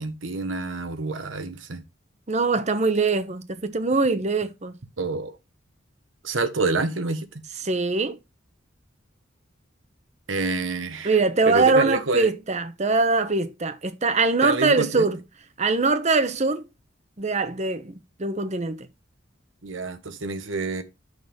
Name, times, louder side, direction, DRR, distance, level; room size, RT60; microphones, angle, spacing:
voice 1, 0.0-1.8 5.0-5.4 6.2-7.3 10.3-11.1 11.5-12.3 14.4-15.1 19.6-20.8, right 3 dB, 80° right, 1.2 m, -27 dB
voice 2, 2.3-4.7 7.6-8.2 11.0-15.2 15.6-16.6 17.2-18.9, right 3 dB, 35° right, 0.9 m, -22 dB
7.0 x 6.5 x 3.5 m
head